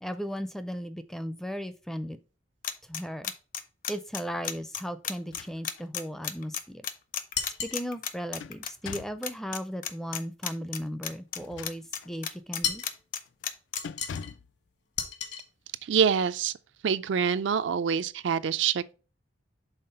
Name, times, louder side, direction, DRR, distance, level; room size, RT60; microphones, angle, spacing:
voice 1, 0.0-2.2 2.9-3.3 3.9-6.8 7.6-12.8, equal, ahead, 0.4 m, -36 dB
sound 1, 2.6-9.0 9.2-9.6 9.8-11.4 11.6-13.8, left 9 dB, 45° left, 0.7 m, -33 dB
sound 2, 5.2-5.9 6.4-6.5 7.9-9.3 11.3-12.2 12.7-12.9 13.3-13.5 13.8-14.5, left 6 dB, 80° left, 0.3 m, -43 dB
sound 3, 7.3-7.8 12.6-13.0 13.8-14.3 15.0-15.5, left 7 dB, 65° left, 1.4 m, -33 dB
voice 2, 15.8-16.5 16.8-18.9, right 7 dB, 75° right, 0.4 m, -26 dB
5.7 x 3.7 x 5.3 m
head